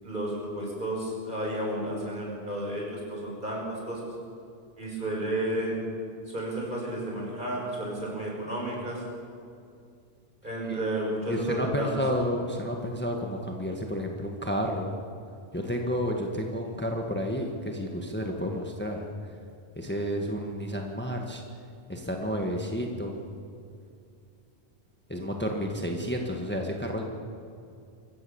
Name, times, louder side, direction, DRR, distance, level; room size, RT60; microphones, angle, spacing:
voice 1, 0.0-4.1 4.8-5.8 6.3-9.0 10.4-12.0, right 1 dB, 45° right, -2 dB, 6.1 m, -32 dB
voice 2, 11.3-14.9 15.5-19.1 19.7-21.4 21.9-23.2 25.1-27.0, equal, 10° left, 1 dB, 1.6 m, -31 dB
24.5 x 15.5 x 7.1 m, 2.5 s
omnidirectional pair, 1.1 m